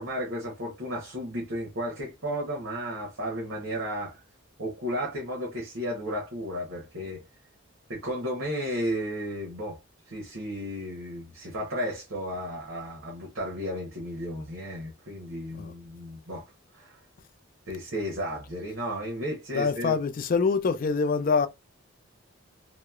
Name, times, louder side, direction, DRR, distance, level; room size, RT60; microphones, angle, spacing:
voice 1, 0.0-4.2 4.6-7.2 7.9-9.8 10.1-16.4 16.7-17.0 17.7-20.0, equal, 65° right, 0.9 m, -33 dB
voice 2, 19.5-21.5, left 4 dB, 40° left, 0.3 m, -25 dB
2.9 x 2.0 x 2.3 m
head